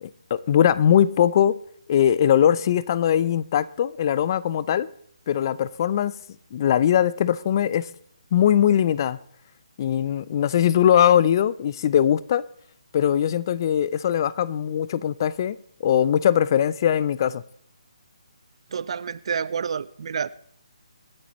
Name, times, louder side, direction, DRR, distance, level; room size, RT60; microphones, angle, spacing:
voice 1, 0.0-1.6 1.9-4.9 5.3-6.1 6.5-7.9 8.3-9.2 9.8-12.4 12.9-17.4, left 10 dB, 35° left, 0.6 m, -21 dB
voice 2, 18.7-20.3, right 6 dB, 55° right, 0.6 m, -29 dB
26.5 x 9.8 x 3.1 m
hypercardioid pair, 155°, 4 cm